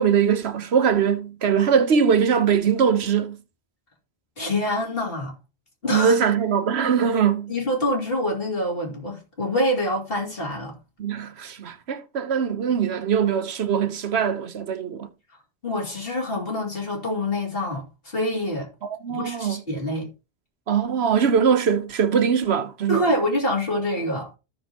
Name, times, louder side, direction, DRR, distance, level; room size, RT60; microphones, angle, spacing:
voice 1, 0.0-3.4 5.9-7.5 11.0-15.1 18.8-19.6 20.7-23.1, right 7 dB, 75° right, 1.2 m, -22 dB
voice 2, 4.4-5.3 5.8-6.2 7.5-10.7 15.6-18.7 19.1-20.1 22.9-24.4, left 1 dB, 60° left, 3.1 m, -26 dB
14.0 x 6.2 x 2.9 m
omnidirectional pair, 1.1 m